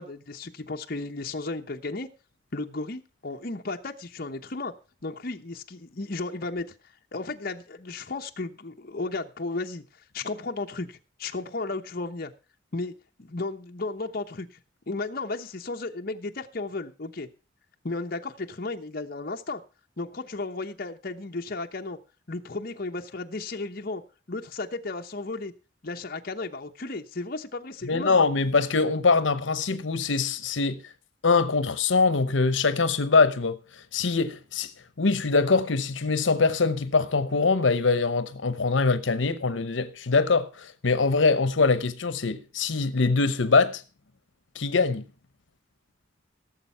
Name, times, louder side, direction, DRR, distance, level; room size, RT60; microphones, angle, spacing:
voice 1, 0.0-2.1 2.5-4.7 5.0-6.7 7.1-12.3 12.7-12.9 13.2-14.5 14.9-17.3 17.8-19.6 20.0-22.0 22.3-24.0 24.3-25.5 25.8-28.1, left 3 dB, 50° left, 1.0 m, -34 dB
voice 2, 27.8-30.9 31.2-34.7 35.0-43.8 44.5-45.0, left 4 dB, 80° left, 0.9 m, -23 dB
16.5 x 7.3 x 5.6 m
head